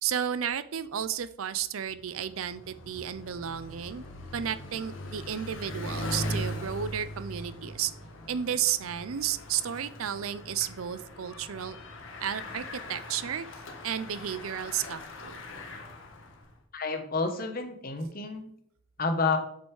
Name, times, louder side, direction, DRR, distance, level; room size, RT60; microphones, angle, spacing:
voice 1, 0.0-4.0 4.3-7.9 8.3-11.8 12.2-13.5 13.8-15.4, right 9 dB, 85° right, 14 dB, 0.5 m, -32 dB
Bicycle, 1.9-16.5, left 1 dB, 70° left, 1.3 m, -40 dB
voice 2, 16.7-18.5 19.0-19.4, left 3 dB, 45° left, 6 dB, 1.1 m, -29 dB
7.7 x 5.4 x 4.7 m, 0.70 s
head